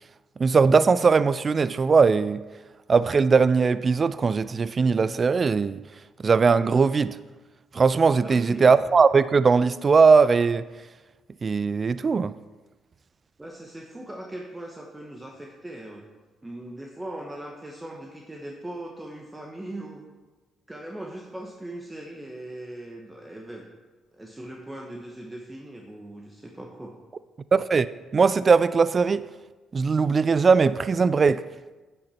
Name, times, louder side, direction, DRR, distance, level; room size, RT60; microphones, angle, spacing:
voice 1, 0.4-2.4 2.9-5.8 6.2-7.2 7.7-10.7 11.4-12.3 27.5-27.9 28.1-29.3 29.7-31.4, right 5 dB, 40° right, 0.3 m, -20 dB
voice 2, 8.2-8.8 13.4-16.1 16.4-20.1 20.7-23.7 24.1-26.9, right 1 dB, 15° right, 1.1 m, -39 dB
10.0 x 8.9 x 4.3 m
cardioid pair, 90°, 0 cm